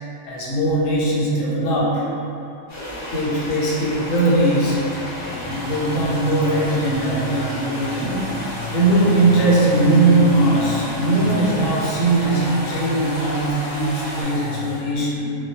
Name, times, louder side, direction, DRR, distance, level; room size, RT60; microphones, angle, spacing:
voice 1, 0.2-2.1 2.9-4.8 5.2-15.3, right 2 dB, 75° left, -6 dB, 1.0 m, -20 dB
sound 1, 2.7-14.2, equal, 35° left, 0.5 m, -33 dB
sound 2, 4.6-14.9, equal, 5° right, 0.7 m, -33 dB
2.2 x 2.1 x 2.7 m, 2.7 s
omnidirectional pair, 1.4 m